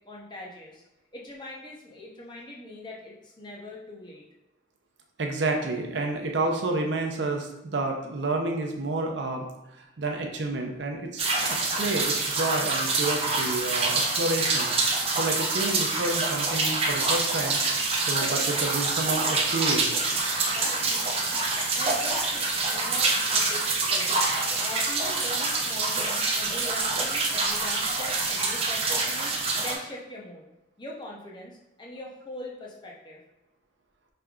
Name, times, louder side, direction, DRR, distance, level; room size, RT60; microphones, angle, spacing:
voice 1, 0.1-0.8 1.1-4.2 20.5-21.4 21.7-24.1 24.6-30.5 30.8-33.2, left 1 dB, 25° left, -3 dB, 0.7 m, -41 dB
voice 2, 5.2-9.5 10.0-14.7 15.2-17.6 18.1-20.0, right 2 dB, 80° right, 2 dB, 0.6 m, -29 dB
sound 1, 11.2-29.8, right 3 dB, 30° right, 0.6 m, -26 dB
5.1 x 3.3 x 2.4 m, 0.92 s
head